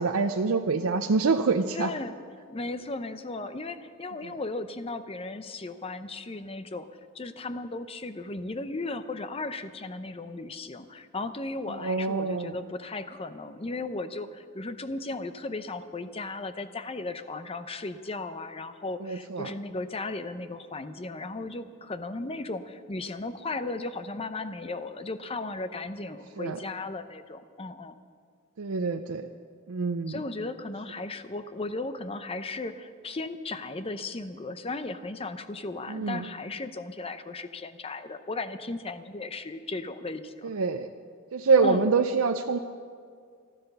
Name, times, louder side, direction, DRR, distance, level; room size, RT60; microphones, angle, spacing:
voice 1, 0.0-1.9 4.2-4.3 11.7-12.5 19.0-19.5 26.4-26.6 28.6-29.3 29.7-30.2 35.9-36.3 40.4-40.9 41.3-42.6, right 4 dB, 80° right, 6 dB, 0.6 m, -26 dB
voice 2, 1.7-2.1 2.5-6.9 7.1-28.0 30.1-40.5 41.6-41.9, left 2 dB, 25° left, 11 dB, 0.6 m, -36 dB
14.5 x 12.5 x 6.8 m, 2.1 s
head